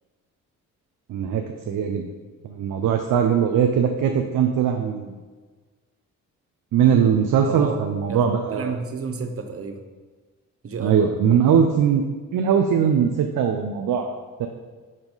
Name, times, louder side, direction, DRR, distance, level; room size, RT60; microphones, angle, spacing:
voice 1, 1.1-2.1 2.4-5.2 6.7-8.7 10.8-12.0 12.3-14.5, right 7 dB, 65° right, 5 dB, 0.6 m, -21 dB
voice 2, 7.4-7.8 8.1-9.8 10.6-11.1, right 4 dB, 40° right, 6 dB, 0.8 m, -31 dB
7.2 x 3.6 x 4.0 m, 1.4 s
supercardioid pair, 50°, 36 cm